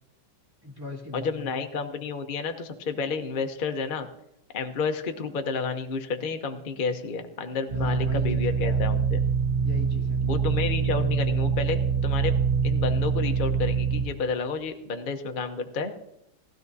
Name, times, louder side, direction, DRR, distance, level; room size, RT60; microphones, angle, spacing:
voice 1, 0.6-1.5 7.7-8.8 9.6-10.2, left 2 dB, 10° right, -1 dB, 2.0 m, -39 dB
voice 2, 1.1-4.1 4.5-9.2 10.2-12.3 12.6-15.9, left 4 dB, 60° left, 6 dB, 0.5 m, -30 dB
sound 1, 7.7-14.0, right 6 dB, 45° right, 1.5 m, -25 dB
18.5 x 13.0 x 2.7 m, 0.83 s
omnidirectional pair, 2.2 m